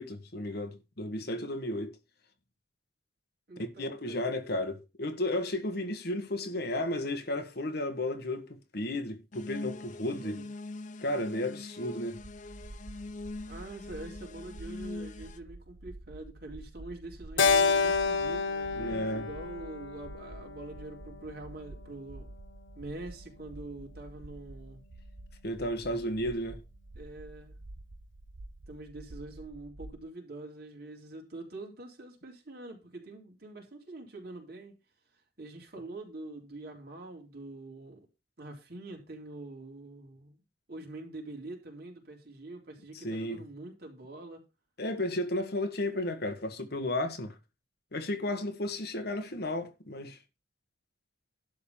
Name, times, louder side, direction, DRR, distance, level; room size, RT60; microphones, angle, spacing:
voice 1, 0.0-1.9 3.6-10.4 11.0-12.2 18.8-19.3 25.4-26.6 43.0-43.4 44.8-47.3 47.9-50.2, left 1 dB, 60° left, 1.5 m, -33 dB
voice 2, 3.5-4.3 10.2-10.5 13.5-22.3 22.8-24.8 27.0-27.6 28.7-34.8 35.4-38.1 38.4-40.4 40.7-44.4, right 2 dB, 55° right, 3.7 m, -45 dB
sound 1, 9.3-15.4, left 2 dB, 40° left, 0.6 m, -43 dB
sound 2, 12.2-30.0, right 1 dB, 90° right, 1.1 m, -49 dB
Keyboard (musical), 17.4-21.8, left 5 dB, 85° left, 1.2 m, -29 dB
11.5 x 4.0 x 7.0 m
head